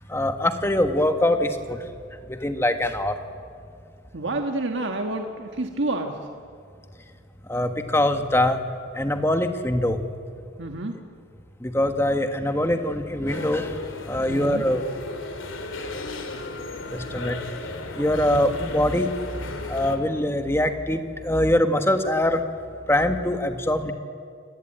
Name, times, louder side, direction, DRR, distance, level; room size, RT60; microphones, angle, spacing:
voice 1, 0.1-1.8 2.3-3.2 7.5-8.6 8.9-10.0 11.6-13.8 14.1-14.8 16.9-17.4 18.0-19.1 19.7-22.4 22.9-23.9, left 1 dB, 10° left, 7 dB, 1.4 m, -23 dB
voice 2, 4.1-6.2 10.6-11.0 14.3-14.7, right 2 dB, 70° right, 4 dB, 1.5 m, -28 dB
sound 1, 13.3-20.0, left 2 dB, 85° left, 2.9 m, -35 dB
29.0 x 17.5 x 9.1 m, 2.3 s
head